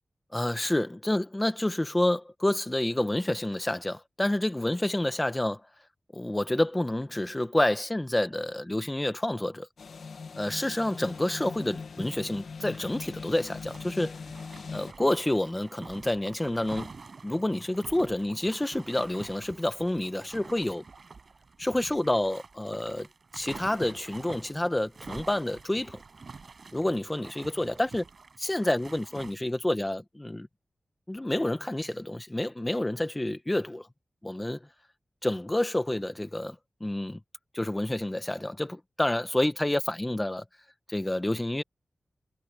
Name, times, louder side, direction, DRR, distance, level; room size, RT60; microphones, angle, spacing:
voice 1, 0.3-5.6 6.1-9.7 10.3-14.2 14.7-16.9 17.2-20.8 21.6-23.1 23.3-26.0 26.7-28.0 28.4-30.5 31.1-33.9 34.2-34.6 35.2-36.5 36.8-37.2 37.5-40.4 40.9-41.6, left 1 dB, 15° left, 1.3 m, -28 dB
sound 1, 9.8-14.9, left 5 dB, 90° left, 1.3 m, -41 dB
sound 2, 12.7-13.1 13.4-29.3, right 4 dB, 60° right, 5.5 m, -47 dB
wide cardioid pair, 105°, 0 cm